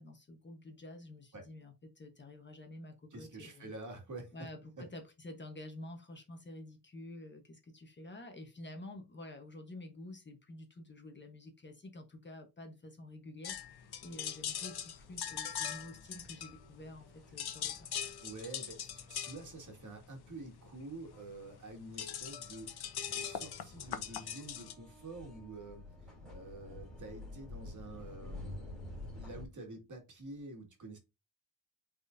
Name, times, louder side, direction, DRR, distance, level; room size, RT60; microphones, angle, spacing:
voice 1, 0.0-3.7 4.3-17.9, left 1 dB, 25° left, 1.1 m, -49 dB
voice 2, 3.1-4.5 4.8-4.9 18.2-28.9 29.1-31.0, right 2 dB, 45° right, 2.1 m, -48 dB
sound 1, 13.4-17.0 17.3-24.7, left 9 dB, 65° left, 0.9 m, -41 dB
sound 2, 15.0-29.4, left 2 dB, ahead, 2.7 m, -52 dB
8.9 x 4.2 x 2.6 m
wide cardioid pair, 180°, 41 cm